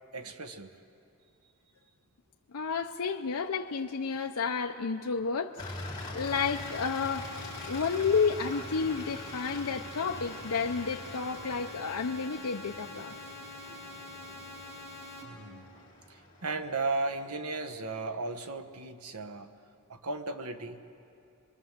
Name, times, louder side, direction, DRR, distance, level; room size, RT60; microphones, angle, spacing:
voice 1, 0.1-0.7 13.6-13.9 15.2-15.7 16.1-19.5 19.9-20.8, right 3 dB, 90° right, 9 dB, 1.2 m, -36 dB
voice 2, 2.5-5.6 6.1-7.3 7.7-13.1, left 5 dB, 85° left, 3 dB, 0.6 m, -31 dB
sound 1, 5.6-17.3, left 2 dB, 20° left, 3.1 m, -44 dB
sound 2, 6.2-15.2, left 2 dB, 30° right, 5.5 m, -45 dB
24.0 x 22.5 x 7.4 m, 2.6 s
head